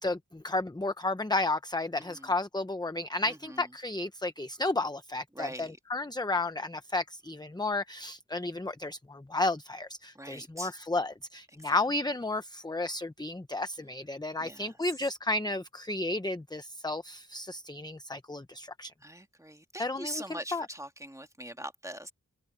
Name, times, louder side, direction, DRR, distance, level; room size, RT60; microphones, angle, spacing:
voice 1, 0.0-18.9 19.8-20.7, left 2 dB, 15° left, 0.8 m, -32 dB
voice 2, 2.0-2.3 3.3-3.6 5.3-5.8 10.2-10.7 11.6-11.8 14.4-14.7 19.0-22.1, right 1 dB, 10° right, 2.0 m, -42 dB
wide cardioid pair, 65°, 32 cm